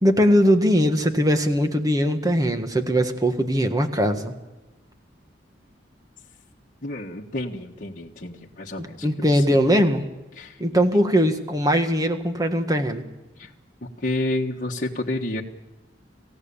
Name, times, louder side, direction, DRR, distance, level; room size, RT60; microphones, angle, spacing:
voice 1, 0.0-4.3 8.8-10.0 10.6-13.0, equal, 20° right, 6 dB, 1.7 m, -20 dB
voice 2, 6.8-9.6 10.4-10.6 13.4-13.5 13.8-15.4, left 1 dB, 50° left, -1 dB, 1.5 m, -30 dB
27.5 x 16.0 x 7.1 m, 1.1 s
head